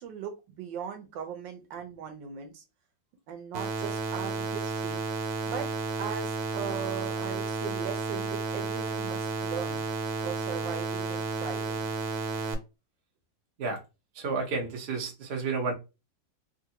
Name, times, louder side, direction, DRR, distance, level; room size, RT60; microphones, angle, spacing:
voice 1, 0.0-2.6 3.3-5.0 5.5-5.7 6.0-9.8 10.2-11.9, right 8 dB, 70° right, 1.3 m, -39 dB
sound 1, 3.5-12.5, right 3 dB, 85° right, 1.5 m, -32 dB
voice 2, 14.2-15.7, right 4 dB, 55° right, 0.7 m, -31 dB
3.2 x 2.5 x 2.8 m
omnidirectional pair, 2.2 m